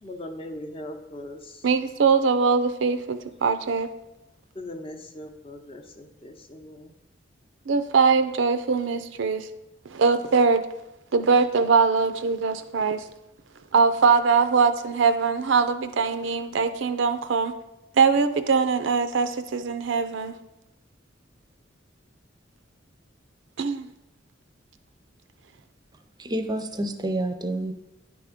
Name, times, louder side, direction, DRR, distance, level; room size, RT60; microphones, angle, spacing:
voice 1, 0.0-1.7 4.5-6.9, left 1 dB, 30° left, 0.7 m, -40 dB
voice 2, 1.6-3.9 7.7-9.5 9.9-10.6 11.1-13.0 13.7-17.5 18.0-20.4 23.6-23.9, right 5 dB, 80° right, 0.5 m, -22 dB
voice 3, 26.2-27.8, right 1 dB, 20° right, 0.6 m, -28 dB
9.8 x 3.5 x 5.1 m
head